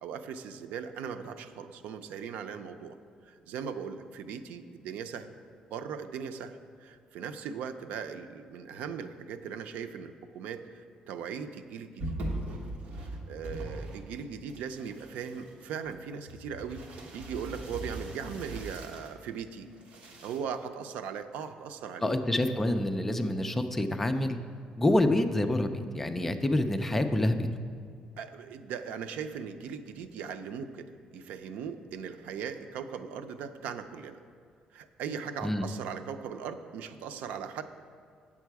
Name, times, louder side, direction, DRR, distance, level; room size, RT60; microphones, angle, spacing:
voice 1, 0.0-3.0 3.3-5.4 5.7-12.1 13.3-16.8 17.1-19.7 20.2-22.2 28.2-30.9 31.1-34.2 34.7-37.6, right 7 dB, 90° right, 9 dB, 0.5 m, -39 dB
sound 1, 12.0-14.2 14.5-19.1 19.7-20.4, right 1 dB, 60° right, 1.2 m, -40 dB
voice 2, 22.0-24.4 24.8-27.5 35.4-35.7, left 1 dB, 10° left, 7 dB, 0.4 m, -27 dB
9.0 x 7.3 x 4.7 m, 2.2 s
cardioid pair, 145°, 2 cm